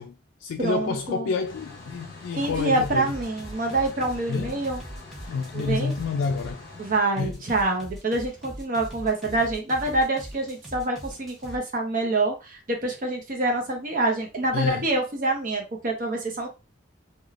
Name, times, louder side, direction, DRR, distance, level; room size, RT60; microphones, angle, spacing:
voice 1, 0.0-3.1 4.3-4.6 5.3-6.6 7.2-7.4 14.5-14.9, left 5 dB, 90° left, 0.3 m, -29 dB
voice 2, 0.6-1.3 2.3-4.8 5.5-5.9 6.8-16.5, right 2 dB, 45° right, 0.7 m, -26 dB
sound 1, 1.5-7.0, left 3 dB, 55° left, 1.0 m, -44 dB
sound 2, 2.4-6.6 7.2-11.6, right 1 dB, ahead, 0.7 m, -41 dB
3.1 x 2.3 x 2.4 m
head